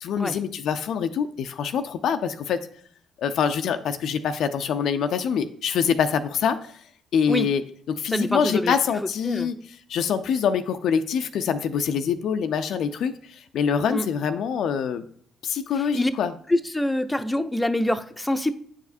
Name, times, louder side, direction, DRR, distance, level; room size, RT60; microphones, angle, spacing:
voice 1, 0.0-2.6 3.2-6.6 7.1-7.6 7.9-9.6 9.9-15.0 15.4-16.3, left 7 dB, 70° left, 9 dB, 0.4 m, -25 dB
voice 2, 8.1-8.7 9.2-9.5 13.9-14.1 15.9-16.1 16.5-18.5, left 1 dB, 10° left, 9 dB, 0.6 m, -25 dB
8.9 x 4.9 x 2.6 m, 0.62 s
hypercardioid pair, 55°, 0 cm